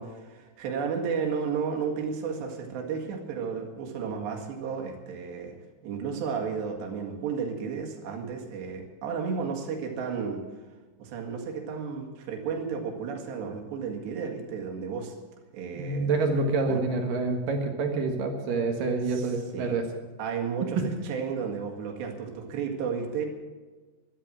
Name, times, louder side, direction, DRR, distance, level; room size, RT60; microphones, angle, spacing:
voice 1, 0.0-5.6 5.8-10.5 11.0-15.2 15.5-16.1 16.7-16.8 19.1-19.8 20.2-23.3, right 6 dB, 90° right, 2 dB, 4.1 m, -33 dB
voice 2, 15.7-19.9 20.8-20.9, right 3 dB, 60° right, 4 dB, 2.9 m, -27 dB
13.0 x 12.5 x 7.3 m, 1.3 s
omnidirectional pair, 4.8 m